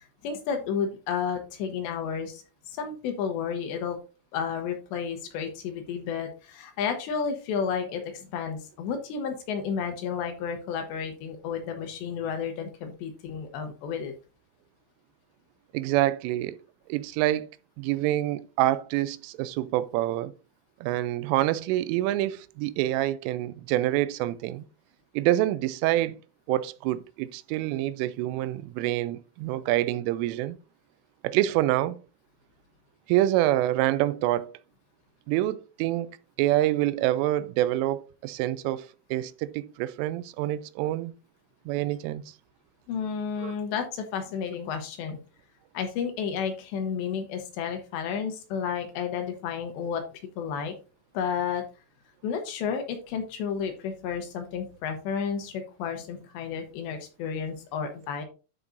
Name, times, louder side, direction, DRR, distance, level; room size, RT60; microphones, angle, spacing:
voice 1, 0.0-2.4 2.7-4.0 4.3-14.1 42.9-45.2 45.7-50.0 50.4-50.7 51.1-51.6 52.2-58.2, left 6 dB, 75° left, 2.9 m, -32 dB
voice 2, 15.7-16.6 16.9-17.5 17.8-20.3 20.8-24.6 25.1-26.2 26.5-30.6 31.2-32.0 33.1-34.5 35.3-36.1 36.4-41.1 41.7-42.2 43.4-43.5, right 14 dB, 85° right, 3.1 m, -26 dB
12.5 x 5.3 x 2.6 m
omnidirectional pair, 5.7 m